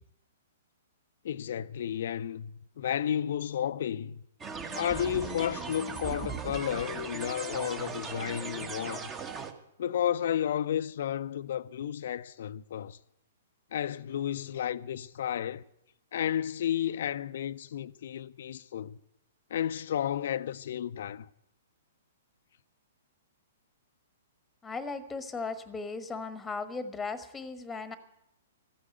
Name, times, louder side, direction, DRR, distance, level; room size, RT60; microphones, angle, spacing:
voice 1, 1.2-4.2 4.7-9.1 9.8-13.0 13.7-15.6 16.1-19.0 19.5-21.3, left 10 dB, 55° left, 0.5 m, -32 dB
sound 1, 4.4-9.5, right 5 dB, 20° right, 1.3 m, -38 dB
voice 2, 24.6-28.0, left 4 dB, 10° left, 1.3 m, -37 dB
14.5 x 9.7 x 7.8 m
figure-of-eight pair, 115°, 0 cm